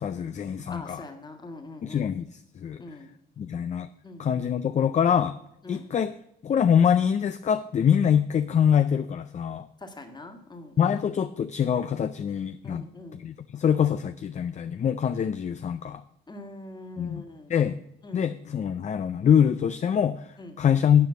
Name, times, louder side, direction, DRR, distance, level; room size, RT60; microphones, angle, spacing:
voice 1, 0.0-1.0 1.8-2.8 3.4-3.9 4.2-5.4 5.7-6.1 6.4-9.7 10.8-12.9 13.1-16.0 17.0-17.8 18.1-21.1, left 8 dB, 35° left, 10 dB, 0.4 m, -24 dB
voice 2, 0.7-2.1 2.8-3.1 4.0-4.4 5.6-5.9 9.8-10.9 12.6-13.2 16.3-17.5 18.0-18.2 20.4-20.6, left 2 dB, 20° left, 5 dB, 1.6 m, -43 dB
9.2 x 5.1 x 7.0 m, 0.78 s
cardioid pair, 90°, 20 cm